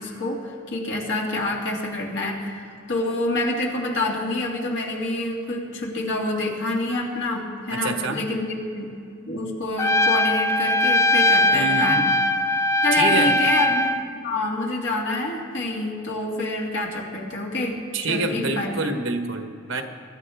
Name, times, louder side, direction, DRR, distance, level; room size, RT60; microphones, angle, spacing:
voice 1, 0.0-9.0 9.3-12.1 12.8-18.8, left 2 dB, 65° left, -2 dB, 2.4 m, -27 dB
voice 2, 7.7-8.2 11.5-12.0 12.9-13.4 17.9-19.8, right 3 dB, 85° right, 5 dB, 1.4 m, -26 dB
Trumpet, 9.8-14.0, left 1 dB, 15° left, 0.4 m, -20 dB
22.5 x 12.0 x 3.6 m, 2.5 s
head